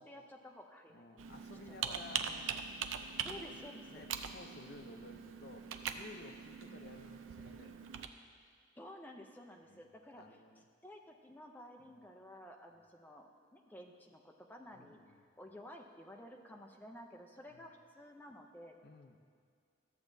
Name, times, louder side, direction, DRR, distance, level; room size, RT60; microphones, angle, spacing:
voice 1, 0.0-1.0 1.7-2.0 3.2-4.0 8.8-15.0 15.4-18.8, equal, 10° left, 2 dB, 0.5 m, -53 dB
voice 2, 0.9-2.6 3.3-3.5 3.9-7.9 9.7-9.8 10.2-10.6 11.8-12.0 14.7-15.2 17.5-17.7 18.8-19.2, left 3 dB, 55° left, 5 dB, 0.6 m, -55 dB
Computer keyboard, 1.2-8.1, right 7 dB, 85° right, 0.4 m, -42 dB
13.0 x 7.1 x 2.6 m, 2.3 s
head